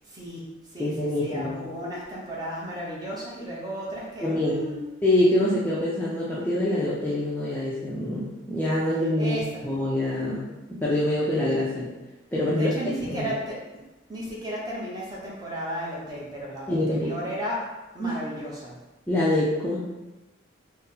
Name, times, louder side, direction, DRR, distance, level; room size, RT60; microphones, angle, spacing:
voice 1, 0.0-0.4 0.7-4.9 9.2-9.6 12.5-13.6 14.1-17.7 17.9-18.8, equal, 20° right, -5 dB, 0.8 m, -34 dB
voice 2, 0.8-1.6 4.2-4.6 5.0-10.4 10.7-11.9 12.3-12.7 13.1-13.2 16.7-17.1 18.0-18.2 19.1-19.8, left 1 dB, 10° left, -7 dB, 0.5 m, -25 dB
4.1 x 2.0 x 3.7 m, 1.1 s
head